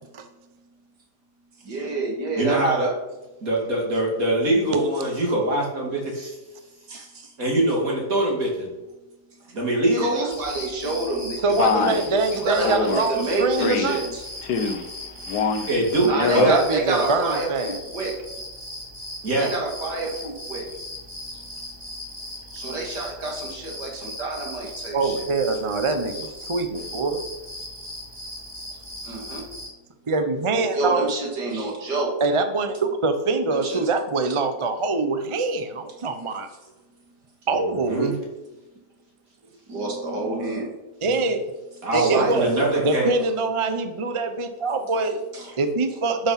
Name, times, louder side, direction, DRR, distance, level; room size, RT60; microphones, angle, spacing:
voice 1, 1.6-2.9 6.9-7.3 9.9-12.0 12.3-14.2 16.0-18.2 19.4-20.7 21.3-21.4 22.5-25.2 28.7-29.4 30.7-32.1 33.5-33.8 39.7-40.7 41.9-42.3 42.7-42.9 45.3-45.6, right 2 dB, 70° right, 0 dB, 2.8 m, -28 dB
voice 2, 2.4-2.9 3.4-6.4 7.4-8.7 9.5-10.4 15.7-16.5 19.2-19.6 37.5-38.1 41.8-43.1, right 1 dB, 55° right, -2 dB, 3.2 m, -23 dB
sound 1, 10.3-29.7, left 1 dB, 15° right, 3.2 m, -38 dB
voice 3, 11.4-14.1 16.4-17.8 24.9-27.2 30.1-31.1 32.2-36.5 37.5-38.2 41.0-41.4 41.9-42.5 42.8-45.2 45.6-46.3, right 3 dB, 35° right, 8 dB, 0.5 m, -24 dB
Male speech man speaking, 11.6-12.1 12.6-13.0 13.6-14.0 14.4-14.9 15.3-15.7 16.1-16.6, left 5 dB, 75° left, 1.4 m, -24 dB
11.5 x 6.0 x 5.8 m, 1.1 s
omnidirectional pair, 1.8 m